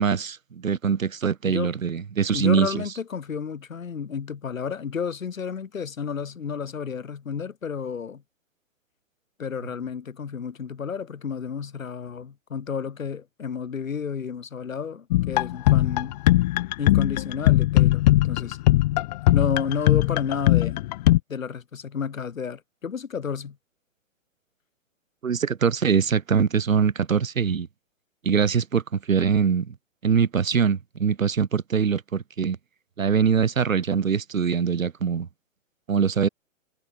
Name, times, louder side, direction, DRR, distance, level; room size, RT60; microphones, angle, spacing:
voice 1, 0.0-2.8 25.2-27.7 28.2-29.7 30.0-32.6 33.0-35.3 35.9-36.3, right 6 dB, 90° right, 4.7 m, -23 dB
voice 2, 2.3-8.2 9.4-16.2 16.8-18.6 19.3-20.8 21.3-23.6, left 6 dB, 85° left, 6.2 m, -31 dB
sound 1, 15.1-21.2, left 16 dB, 35° left, 0.9 m, -20 dB
hypercardioid pair, 150°, 39 cm